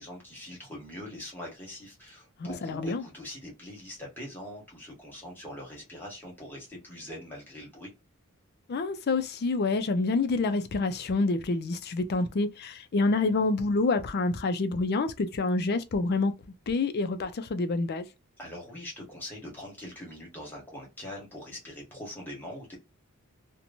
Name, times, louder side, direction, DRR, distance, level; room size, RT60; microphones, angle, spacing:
voice 1, 0.0-7.9 18.4-22.8, left 1 dB, 10° left, 1.4 m, -42 dB
voice 2, 2.6-3.0 8.7-16.3 16.7-18.1, left 3 dB, 45° left, 0.4 m, -27 dB
2.9 x 2.1 x 2.6 m
head